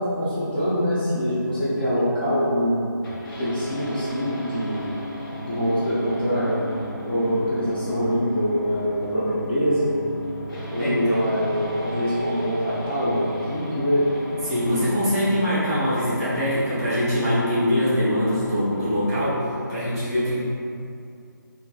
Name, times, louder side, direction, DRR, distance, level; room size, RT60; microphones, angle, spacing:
voice 1, 0.0-2.8 3.4-4.9 5.4-6.7 7.0-9.9 10.7-14.1, equal, 30° left, -11 dB, 0.5 m, -24 dB
sound 1, 3.0-19.0, equal, 85° left, 1.1 m, -35 dB
voice 2, 10.8-11.2 14.5-20.3, equal, 15° right, -13 dB, 1.3 m, -23 dB
3.6 x 2.5 x 2.4 m, 2.5 s
figure-of-eight pair, 160°, 11 cm